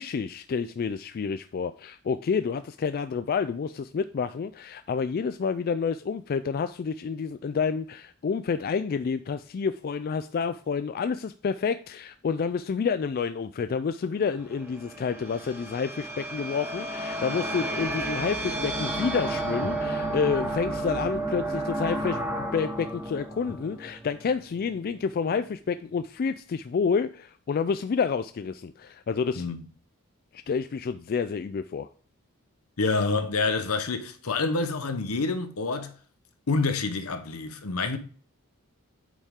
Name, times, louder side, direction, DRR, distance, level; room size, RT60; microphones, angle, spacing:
voice 1, 0.0-29.4 30.5-31.9, left 5 dB, 40° left, 0.3 m, -29 dB
sound 1, 14.2-24.6, right 1 dB, 10° right, 1.3 m, -32 dB
voice 2, 32.8-35.9 36.5-38.0, left 3 dB, 75° left, 1.0 m, -27 dB
8.3 x 5.4 x 3.6 m
head